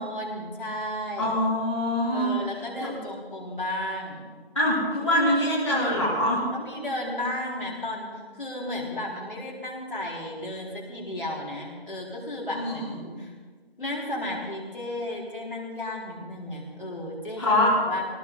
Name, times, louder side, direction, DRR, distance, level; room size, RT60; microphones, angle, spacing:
voice 1, 0.0-1.4 2.1-4.3 6.5-13.3 13.8-17.6 17.9-18.0, left 1 dB, 55° left, -4 dB, 4.6 m, -34 dB
voice 2, 1.2-2.3 2.8-2.9 4.5-6.4 12.5-13.0 17.4-17.7, left 1 dB, 30° left, -8 dB, 2.8 m, -24 dB
19.0 x 18.0 x 4.1 m, 1.5 s
figure-of-eight pair, 180°, 31 cm